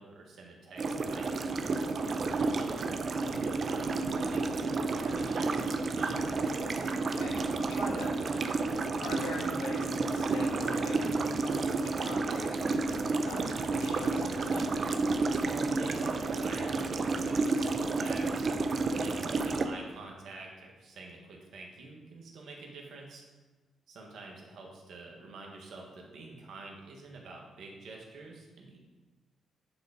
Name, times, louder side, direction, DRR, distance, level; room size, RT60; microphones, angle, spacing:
voice 1, 0.0-6.3 15.5-18.5 19.0-23.2 23.9-28.8, right 3 dB, 70° right, 0 dB, 1.6 m, -47 dB
sound 1, 0.8-19.7, right 3 dB, 55° right, 0.6 m, -31 dB
voice 2, 7.1-8.1 9.0-14.7, left 2 dB, 90° left, -2 dB, 1.6 m, -42 dB
9.7 x 4.0 x 5.3 m, 1.2 s
supercardioid pair, 50°, 0 cm